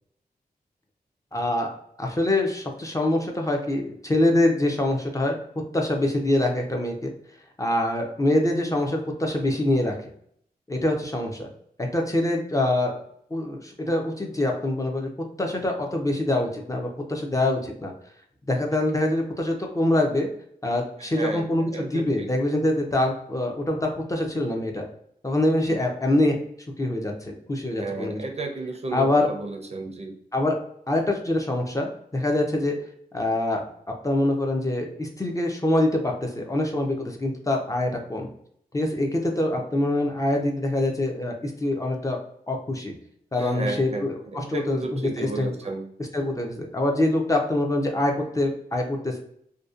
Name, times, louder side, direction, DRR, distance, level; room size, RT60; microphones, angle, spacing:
voice 1, 1.3-1.7 2.0-5.4 5.7-7.1 7.6-10.0 10.7-11.5 11.8-13.0 13.3-15.1 15.4-17.9 18.5-20.3 20.6-24.8 25.2-26.4 26.8-28.2 28.9-29.3 30.3-30.6 30.9-32.7 33.1-33.7 34.0-38.3 38.7-42.2 42.5-43.0 43.3-45.5 46.1-49.2, left 1 dB, 20° left, 1 dB, 0.4 m, -24 dB
voice 2, 21.0-22.3 25.7-25.8 27.7-30.2 43.3-45.9, right 3 dB, 40° right, 2 dB, 0.4 m, -33 dB
2.6 x 2.1 x 2.3 m, 0.68 s
wide cardioid pair, 100°, 16 cm